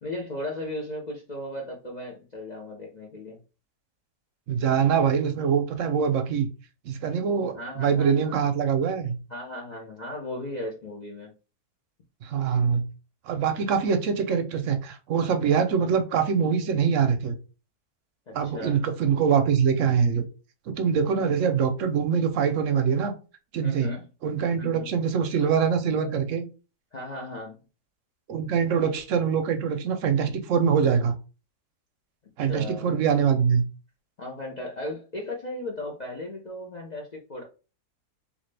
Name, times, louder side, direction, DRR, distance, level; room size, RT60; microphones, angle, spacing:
voice 1, 0.0-3.4 7.5-8.4 9.3-11.3 18.3-18.9 23.6-24.1 24.6-24.9 26.9-27.6 32.4-32.9 34.2-37.4, left 1 dB, 55° left, 0.4 m, -36 dB
voice 2, 4.5-6.5 6.9-9.2 12.2-12.8 13.3-17.4 18.3-20.2 20.7-23.1 23.5-23.9 24.2-26.4 28.3-31.1 32.4-33.6, right 6 dB, 65° right, 0.8 m, -24 dB
3.5 x 2.6 x 3.2 m
omnidirectional pair, 1.7 m